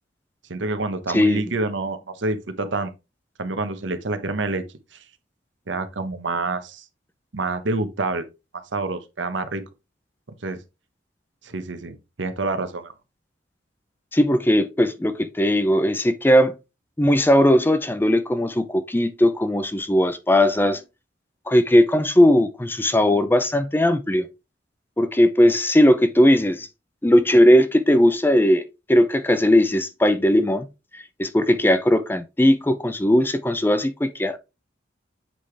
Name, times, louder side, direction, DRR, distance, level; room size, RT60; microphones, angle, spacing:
voice 1, 0.5-2.9 3.4-4.6 4.9-5.0 5.7-6.8 7.3-8.3 8.7-9.6 10.4-10.6 11.4-12.9, right 3 dB, 80° right, 1.0 m, -27 dB
voice 2, 14.1-16.6 17.0-20.8 21.5-24.3 25.0-26.7 27.0-28.6 28.9-30.7 30.9-34.4, left 1 dB, 10° left, 0.5 m, -18 dB
7.6 x 4.9 x 3.3 m
head